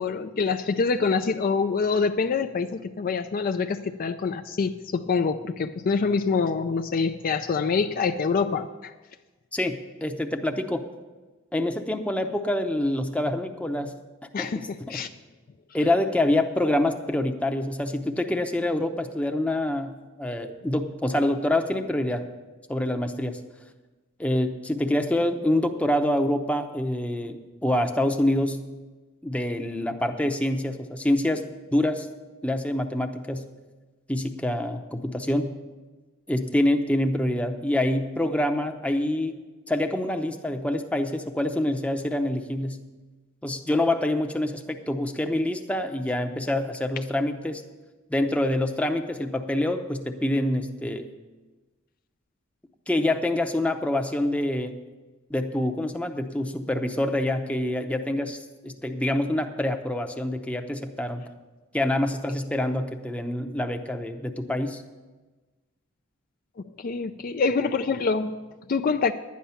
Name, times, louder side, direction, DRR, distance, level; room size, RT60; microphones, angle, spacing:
voice 1, 0.0-8.9 14.3-15.1 66.8-69.1, left 5 dB, 45° left, 7 dB, 0.4 m, -26 dB
voice 2, 9.5-10.8 11.5-13.9 14.4-14.5 14.9-15.0 15.7-19.9 20.2-22.2 22.7-23.4 24.2-28.6 29.2-31.4 31.7-32.1 32.4-33.4 34.1-35.5 36.3-39.3 39.7-42.8 43.4-47.6 48.1-51.1 52.9-54.8 55.3-61.2 61.7-64.8, left 1 dB, 5° left, 5 dB, 0.7 m, -26 dB
11.0 x 9.5 x 5.7 m, 1.2 s
head